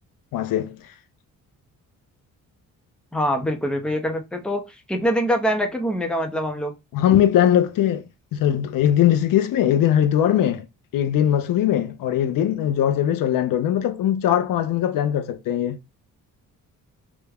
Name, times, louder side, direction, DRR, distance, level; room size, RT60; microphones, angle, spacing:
voice 1, 0.3-0.8 6.9-8.0 8.3-10.7 10.9-15.8, left 10 dB, 80° left, 0.6 m, -20 dB
voice 2, 3.1-6.7, equal, 5° left, 0.6 m, -24 dB
3.5 x 2.2 x 3.4 m
cardioid pair, 95°, 33 cm